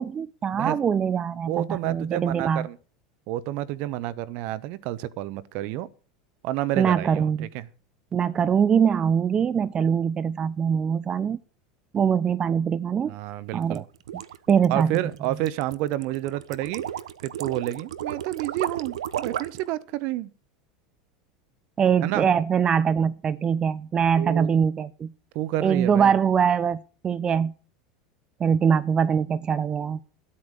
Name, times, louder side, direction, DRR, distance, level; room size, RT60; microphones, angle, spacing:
voice 1, 0.0-2.7 6.8-7.5 8.1-11.4 11.9-13.1 13.5-13.8 14.5-15.0 21.8-25.1 25.6-27.5 28.4-30.0, right 7 dB, 30° right, 0.7 m, -23 dB
voice 2, 1.4-2.8 3.3-5.9 6.4-7.6 13.0-13.8 14.7-16.8 17.2-20.3 22.0-22.3 24.2-24.5 25.3-26.1, right 14 dB, 60° right, 1.1 m, -29 dB
sound 1, 13.6-19.7, right 10 dB, 80° right, 0.9 m, -34 dB
12.0 x 8.7 x 6.5 m
hypercardioid pair, 90°, 3 cm